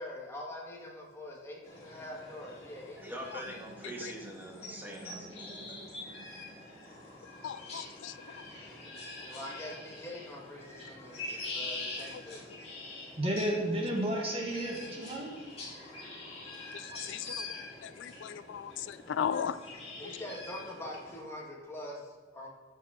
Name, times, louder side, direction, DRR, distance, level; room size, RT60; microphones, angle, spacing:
voice 1, 0.0-3.2 8.8-12.6 20.0-22.5, left 1 dB, 15° left, -3 dB, 1.7 m, -44 dB
sound 1, 1.6-21.2, left 2 dB, 35° left, 2.8 m, -45 dB
voice 2, 3.0-5.6, right 1 dB, 10° right, -1 dB, 1.7 m, -43 dB
sound 2, 3.3-7.7, right 1 dB, 80° right, 1.4 m, -54 dB
voice 3, 7.4-8.5 12.1-12.2 16.7-17.5 17.8-19.6 20.0-20.2, left 8 dB, 70° left, 15 dB, 0.3 m, -37 dB
voice 4, 13.2-15.3, right 1 dB, 30° right, -1 dB, 1.8 m, -32 dB
13.5 x 5.9 x 4.4 m, 1.3 s
head